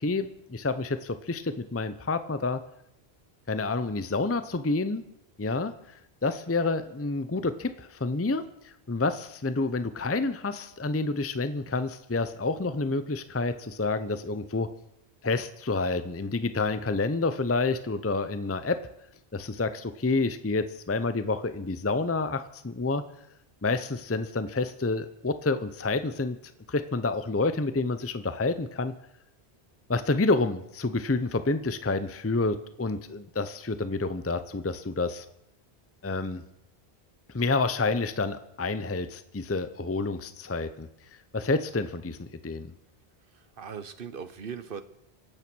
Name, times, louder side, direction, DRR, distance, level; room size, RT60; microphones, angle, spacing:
voice 1, 0.0-2.6 3.5-5.0 5.4-14.7 15.2-18.8 19.3-23.0 23.6-26.4 26.7-28.9 29.9-35.3 36.0-36.4 37.3-40.9 41.3-42.7, left 3 dB, 15° left, 11 dB, 0.6 m, -29 dB
voice 2, 43.3-44.8, right 6 dB, 60° right, 12 dB, 1.2 m, -39 dB
24.5 x 8.9 x 6.2 m, 0.82 s
omnidirectional pair, 1.1 m